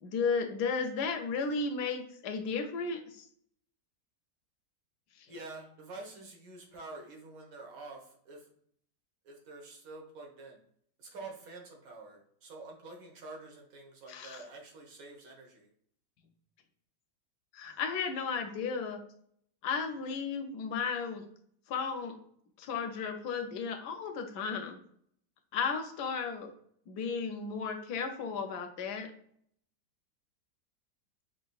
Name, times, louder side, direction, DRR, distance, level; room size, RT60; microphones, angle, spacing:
voice 1, 0.0-3.3 14.1-14.4 17.5-19.0 19.6-21.2 21.7-22.2 22.6-24.8 25.5-26.5 26.9-29.1, left 5 dB, 80° left, 7 dB, 1.1 m, -34 dB
voice 2, 5.3-8.5 9.2-10.6 11.0-15.7, right 3 dB, 60° right, 1 dB, 1.4 m, -47 dB
6.3 x 2.8 x 2.3 m, 0.65 s
omnidirectional pair, 1.8 m